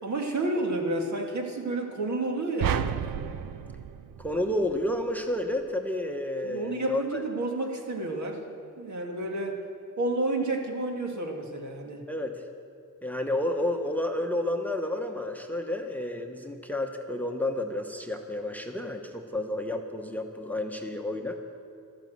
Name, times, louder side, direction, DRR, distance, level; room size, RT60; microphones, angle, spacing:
voice 1, 0.0-3.0 6.4-8.5 8.8-9.6 10.0-12.0, right 2 dB, 55° right, 2 dB, 2.1 m, -30 dB
sound 1, 2.6-5.0, right 8 dB, 80° right, 0.6 m, -32 dB
voice 2, 4.2-7.2 12.1-12.4 13.0-21.4, left 1 dB, 5° left, 4 dB, 1.1 m, -30 dB
12.5 x 11.5 x 7.9 m, 2.5 s
cardioid pair, 80°, 34 cm